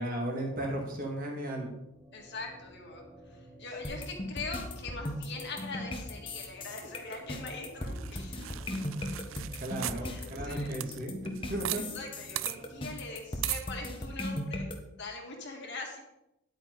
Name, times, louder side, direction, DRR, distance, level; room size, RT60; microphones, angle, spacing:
voice 1, 0.0-1.7 9.6-11.1 11.5-11.8, right 1 dB, 40° right, 0 dB, 2.1 m, -35 dB
sound 1, 1.5-12.9, equal, 10° right, 0.7 m, -53 dB
voice 2, 2.1-8.8 10.0-10.7 11.7-14.7 15.0-16.0, left 3 dB, 50° left, 1 dB, 2.0 m, -42 dB
sound 2, 3.8-14.7, left 1 dB, 25° left, 1.0 m, -37 dB
sound 3, 7.9-11.8 12.1-12.2 12.4-12.6 13.4-13.7, right 15 dB, 60° right, 0.3 m, -37 dB
10.0 x 8.6 x 3.9 m, 0.88 s
head